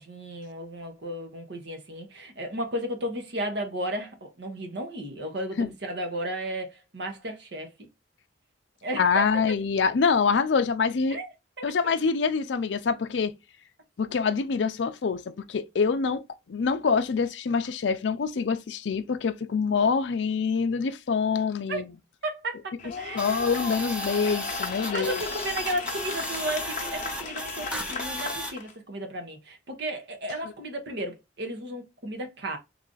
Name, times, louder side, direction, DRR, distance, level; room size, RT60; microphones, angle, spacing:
voice 1, 0.0-7.9 8.8-9.6 11.1-12.0 21.7-21.8 22.2-23.5 23.9-24.0 24.9-32.6, right 1 dB, 70° right, 0.9 m, -34 dB
voice 2, 9.0-11.2 11.6-13.3 14.0-15.2 15.5-16.2 16.5-21.9 23.1-25.2, left 5 dB, 75° left, 0.4 m, -25 dB
sound 1, 22.8-28.7, left 5 dB, 45° left, 0.7 m, -36 dB
sound 2, 23.2-28.5, right 1 dB, 5° right, 0.6 m, -35 dB
3.2 x 2.5 x 3.8 m
head